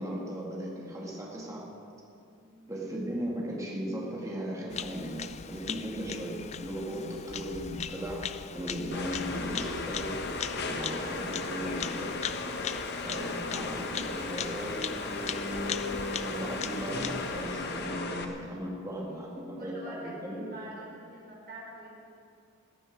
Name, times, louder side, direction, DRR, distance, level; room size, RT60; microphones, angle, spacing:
voice 1, 0.0-1.7 2.7-10.2 10.6-12.2 13.0-20.5, equal, 15° right, -3 dB, 2.0 m, -37 dB
voice 2, 2.3-2.8 19.0-21.9, right 1 dB, 45° right, -4 dB, 4.6 m, -47 dB
Bird vocalization bird call bird song, 4.7-17.9, left 8 dB, 30° left, 0.4 m, -40 dB
sound 1, 8.9-18.2, left 3 dB, 50° left, 1.3 m, -36 dB
17.0 x 9.9 x 7.3 m, 2.6 s
head